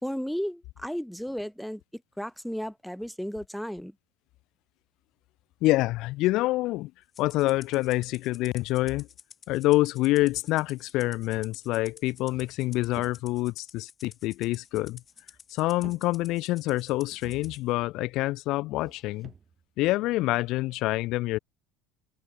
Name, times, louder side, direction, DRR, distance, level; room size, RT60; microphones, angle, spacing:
voice 1, 0.0-3.9, equal, ahead, 1.5 m, -34 dB
voice 2, 5.6-6.9 7.2-9.1 9.5-15.0 15.5-19.3 19.8-21.4, left 18 dB, 55° left, 0.8 m, -26 dB
Rattle (instrument), 7.1-17.6, left 7 dB, 35° left, 3.6 m, -51 dB
sound 1, 11.7-11.8 12.1-13.5 14.6-15.4 15.6-16.5 17.1-17.8 18.8-19.7 20.3-20.4, right 6 dB, 30° right, 7.7 m, -51 dB
figure-of-eight pair, 65°, 0 cm